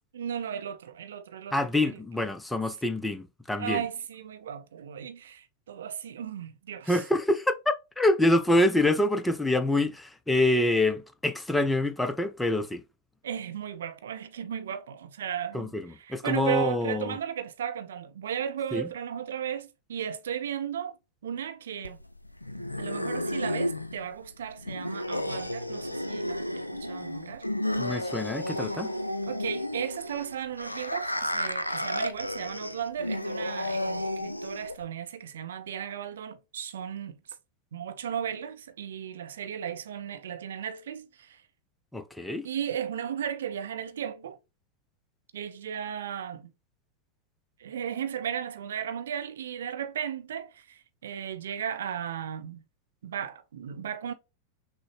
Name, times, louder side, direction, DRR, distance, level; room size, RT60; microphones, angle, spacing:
voice 1, 0.1-1.5 1.9-2.0 3.6-7.0 13.2-15.7 16.0-21.0 21.2-22.0 22.8-27.5 28.5-28.6 29.3-37.2 37.7-41.4 42.4-44.4 45.3-46.5 47.6-52.6 53.0-54.1, right 9 dB, 60° right, 0.5 m, -35 dB
voice 2, 1.5-3.8 6.9-12.8 15.5-17.2 18.7-18.9 27.8-28.9 41.9-42.5, left 1 dB, 5° left, 0.4 m, -26 dB
sound 1, 21.8-34.8, left 1 dB, 85° left, 0.3 m, -32 dB
6.0 x 2.0 x 3.2 m
figure-of-eight pair, 90°, 0 cm